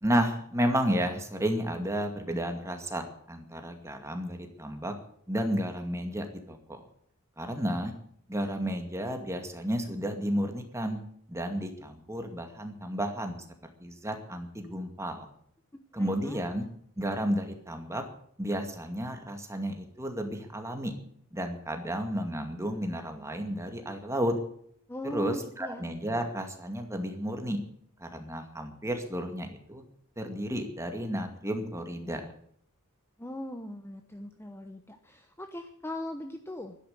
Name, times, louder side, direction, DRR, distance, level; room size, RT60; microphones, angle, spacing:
voice 1, 0.0-4.9 5.3-6.8 7.4-7.9 8.3-11.0 11.3-13.4 13.8-15.3 15.9-16.6 17.0-18.0 18.4-20.9 21.3-24.3 25.1-27.6 28.0-29.8 30.2-32.3, equal, 15° right, 5 dB, 2.2 m, -32 dB
voice 2, 15.9-16.4 24.9-25.8 33.2-36.8, equal, 10° left, 6 dB, 0.9 m, -39 dB
12.0 x 11.0 x 9.4 m, 0.65 s
head